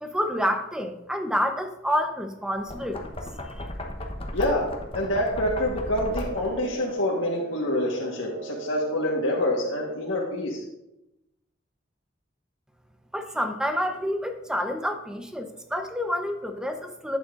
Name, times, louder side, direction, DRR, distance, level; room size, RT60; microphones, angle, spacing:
voice 1, 0.0-3.0 3.5-3.7 13.1-17.2, equal, 5° right, 5 dB, 0.8 m, -28 dB
Knock, 2.5-6.7, left 1 dB, 30° left, 1.0 m, -35 dB
voice 2, 4.3-4.6 4.9-10.6, left 1 dB, 90° left, -3 dB, 1.4 m, -26 dB
sound 1, 5.9-10.2, right 5 dB, 85° right, 2.6 m, -40 dB
11.5 x 8.9 x 2.5 m, 0.89 s
head